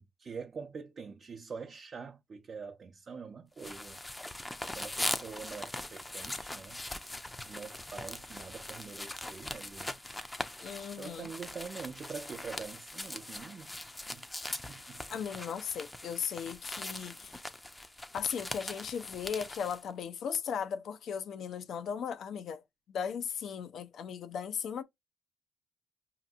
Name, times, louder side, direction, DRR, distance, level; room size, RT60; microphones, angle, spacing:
voice 1, 0.0-4.0 4.6-6.8 7.5-10.0 11.0-13.8 14.1-14.2 14.5-15.2, right 5 dB, 45° right, 0.6 m, -45 dB
sound 1, 3.6-19.8, left 1 dB, 15° left, 0.5 m, -41 dB
voice 2, 10.6-11.3 15.1-17.4 18.1-22.6 22.9-24.8, left 7 dB, 70° left, 0.5 m, -37 dB
4.9 x 2.9 x 2.4 m
cardioid pair, 85°, 0 cm